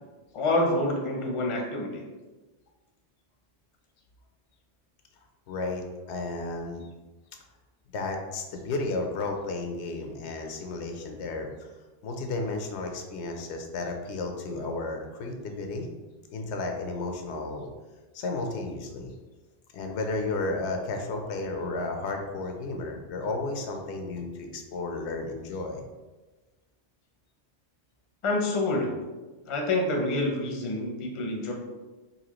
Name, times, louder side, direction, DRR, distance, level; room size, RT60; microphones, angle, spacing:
voice 1, 0.3-2.0 28.2-28.9 29.5-31.5, left 2 dB, 35° left, 0 dB, 0.6 m, -27 dB
voice 2, 5.5-6.9 7.9-11.7 12.0-15.9 16.3-17.7 18.1-19.1 19.7-25.8, left 3 dB, 85° left, 4 dB, 0.9 m, -33 dB
4.1 x 2.6 x 2.9 m, 1.2 s
omnidirectional pair, 1.1 m